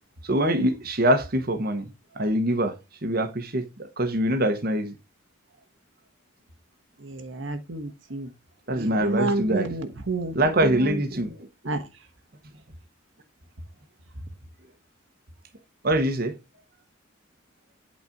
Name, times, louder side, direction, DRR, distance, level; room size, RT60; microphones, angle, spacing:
voice 1, 0.2-1.9 2.2-2.7 3.0-4.9 8.7-9.7 10.3-11.4 15.8-16.3, right 1 dB, 50° right, 1.1 m, -24 dB
voice 2, 7.0-8.3 8.8-10.4 11.6-11.9, right 2 dB, 70° right, 1.2 m, -30 dB
8.4 x 4.2 x 5.2 m
head